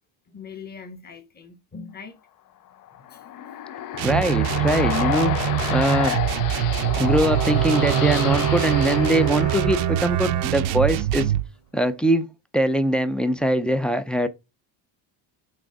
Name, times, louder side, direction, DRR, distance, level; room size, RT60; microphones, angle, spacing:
voice 1, 0.3-2.2 3.1-3.2 6.9-7.1, left 5 dB, 20° left, 1.2 m, -41 dB
sound 1, 2.9-10.4, left 12 dB, 50° left, 0.6 m, -30 dB
sound 2, 3.9-11.5, right 13 dB, 85° right, 0.7 m, -24 dB
voice 2, 4.0-5.4 5.7-6.2 7.0-11.3 11.7-14.3, right 1 dB, ahead, 0.4 m, -22 dB
Bowed string instrument, 6.8-11.1, right 12 dB, 40° right, 0.7 m, -28 dB
6.3 x 3.7 x 4.7 m
cardioid pair, 150°, 45 cm